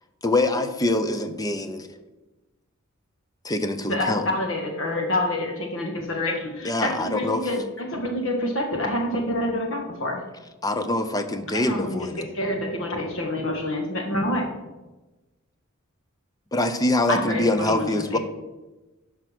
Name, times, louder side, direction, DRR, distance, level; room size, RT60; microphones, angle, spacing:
voice 1, 0.2-1.9 3.4-4.3 6.6-7.4 10.6-12.3 16.5-18.2, left 2 dB, 15° left, 9 dB, 0.7 m, -24 dB
voice 2, 3.9-10.2 11.5-14.5 17.1-18.2, left 1 dB, 65° left, 2 dB, 2.0 m, -27 dB
12.0 x 5.1 x 6.2 m, 1.1 s
head